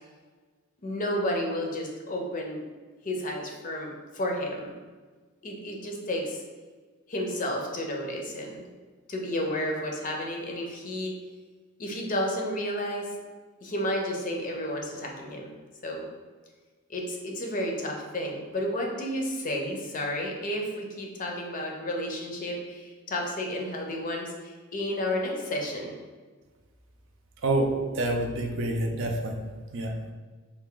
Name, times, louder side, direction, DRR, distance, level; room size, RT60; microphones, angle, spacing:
voice 1, 0.8-2.6 3.0-4.7 5.4-6.4 7.1-8.6 9.1-11.1 11.8-13.1 13.6-15.5 15.8-16.1 16.9-25.9, left 1 dB, 40° left, 0 dB, 0.6 m, -31 dB
voice 2, 27.4-29.4 29.7-29.9, right 2 dB, 60° right, 2 dB, 0.5 m, -27 dB
3.4 x 2.5 x 3.7 m, 1.4 s
head